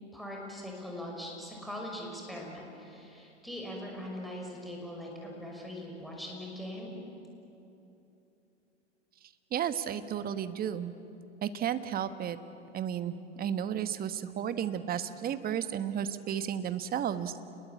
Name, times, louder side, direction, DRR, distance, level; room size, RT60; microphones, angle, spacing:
voice 1, 0.1-6.9, left 1 dB, ahead, -2 dB, 5.9 m, -41 dB
voice 2, 9.5-10.9 11.4-12.4 12.7-17.3, right 9 dB, 25° right, 12 dB, 1.3 m, -33 dB
29.5 x 21.5 x 8.5 m, 3.0 s
hypercardioid pair, 100°, 36 cm